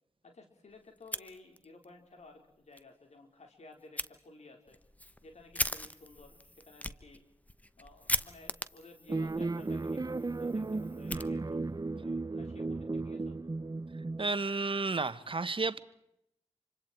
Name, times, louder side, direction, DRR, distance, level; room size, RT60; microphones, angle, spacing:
voice 1, 0.2-4.8 5.2-7.2 7.8-11.4 12.0-13.4, left 3 dB, 75° left, 4.6 m, -55 dB
Fire, 1.0-1.9 2.2-2.3 2.7-2.8 4.0-4.1 4.7-11.8, left 1 dB, 15° left, 1.1 m, -39 dB
sound 1, 9.1-14.3, right 3 dB, 35° right, 0.8 m, -35 dB
voice 2, 14.2-15.8, right 3 dB, 50° right, 1.3 m, -32 dB
28.0 x 25.5 x 4.6 m
cardioid pair, 40°, 12 cm